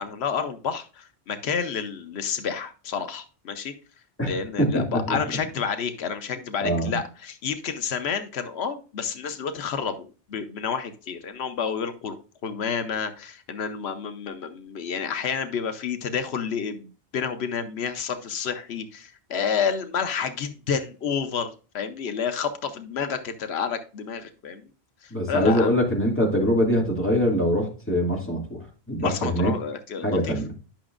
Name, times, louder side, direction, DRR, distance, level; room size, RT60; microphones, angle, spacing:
voice 1, 0.0-3.7 4.2-12.2 12.4-24.6 25.0-25.7 29.0-30.4, left 6 dB, 85° left, 9 dB, 1.0 m, -30 dB
voice 2, 4.2-5.2 6.6-7.0 25.1-29.5 30.0-30.5, equal, 10° left, -2 dB, 2.3 m, -23 dB
10.5 x 5.9 x 2.5 m, 0.35 s
omnidirectional pair, 1.0 m